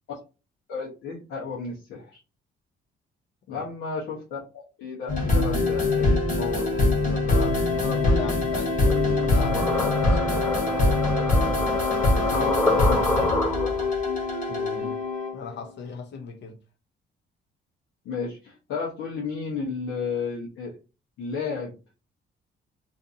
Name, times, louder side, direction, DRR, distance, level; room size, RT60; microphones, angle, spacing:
voice 1, 0.7-2.2 3.5-6.2 12.3-13.3 13.6-13.9 18.0-20.8 21.2-21.8, left 5 dB, 80° left, 0.9 m, -32 dB
sound 1, 5.1-15.5, left 2 dB, 45° left, 1.0 m, -23 dB
voice 2, 6.4-11.0 12.2-12.5 14.5-15.1 15.3-16.6, left 5 dB, 60° left, 0.6 m, -37 dB
sound 2, 8.8-13.9, left 2 dB, 10° left, 0.5 m, -28 dB
2.6 x 2.5 x 2.5 m
cardioid pair, 90°, 20 cm